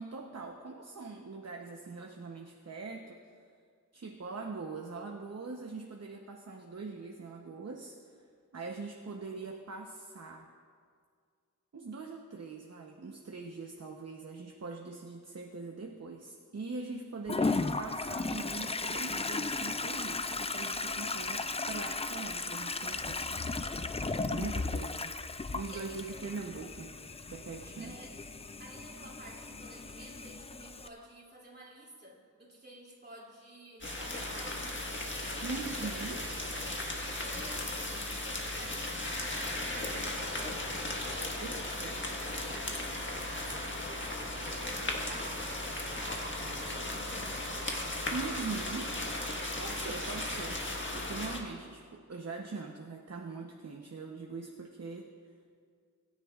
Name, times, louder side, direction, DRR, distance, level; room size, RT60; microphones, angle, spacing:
voice 1, 0.0-3.2 3.9-8.0 8.5-10.5 11.7-23.2 24.3-25.1 25.5-26.9 27.3-28.0 35.4-36.3 41.4-41.9 48.1-48.9 49.6-50.7 50.9-55.1, right 4 dB, 50° right, 1 dB, 0.9 m, -42 dB
Toilet flush, 17.3-30.9, left 3 dB, 20° left, 0.4 m, -36 dB
voice 2, 24.6-24.9 25.7-26.8 27.7-28.2 28.6-36.0 36.5-38.3 38.6-47.9, right 1 dB, 30° right, -4 dB, 2.7 m, -52 dB
sound 1, 33.8-51.4, left 1 dB, 35° left, 1.5 m, -36 dB
20.5 x 10.0 x 2.4 m, 2.1 s
wide cardioid pair, 75°, 32 cm